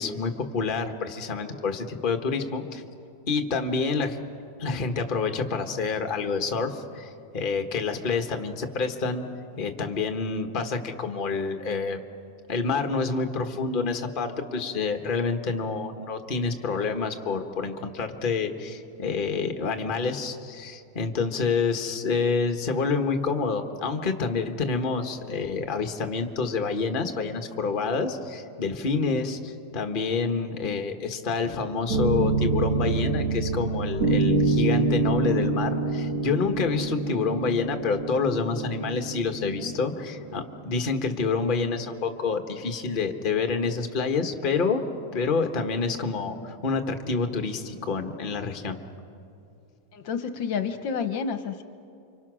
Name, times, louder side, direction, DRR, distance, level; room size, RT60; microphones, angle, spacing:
voice 1, 0.0-2.8 3.3-4.2 4.6-9.3 9.6-12.0 12.5-44.8 45.1-48.8, left 4 dB, 30° left, 6 dB, 1.3 m, -28 dB
sound 1, 31.9-40.7, right 3 dB, 45° right, 2.5 m, -26 dB
voice 2, 49.9-51.6, left 6 dB, 70° left, 9 dB, 1.5 m, -30 dB
29.5 x 25.0 x 6.2 m, 2.6 s
omnidirectional pair, 2.2 m